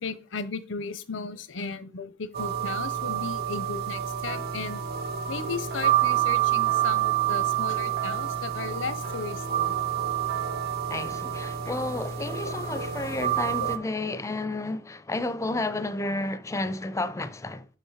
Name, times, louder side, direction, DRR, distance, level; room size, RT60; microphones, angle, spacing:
voice 1, 0.0-4.8 5.3-9.7 12.4-12.5 13.6-13.7 15.7-15.8, left 4 dB, 80° left, 0.7 m, -35 dB
sound 1, 2.3-13.8, right 11 dB, 55° right, 0.6 m, -28 dB
sound 2, 3.9-11.9, right 3 dB, 80° right, 1.2 m, -42 dB
voice 2, 10.9-17.7, left 2 dB, 15° left, 0.4 m, -31 dB
6.1 x 5.5 x 4.9 m
head